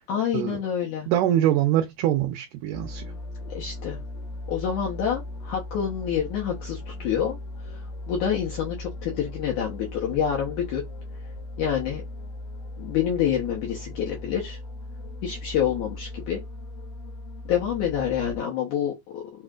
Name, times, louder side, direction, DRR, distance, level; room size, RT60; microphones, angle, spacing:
voice 1, 0.1-1.1 3.5-4.0 4.5-7.4 7.7-7.8 8.1-10.8 11.6-12.0 12.8-14.6 15.2-16.4 17.5-19.2, left 9 dB, 65° left, 2.4 m, -27 dB
voice 2, 1.1-3.0, right 12 dB, 75° right, 2.2 m, -23 dB
sound 1, 2.7-18.4, left 2 dB, 85° left, 3.0 m, -38 dB
6.1 x 3.2 x 2.4 m
omnidirectional pair, 4.0 m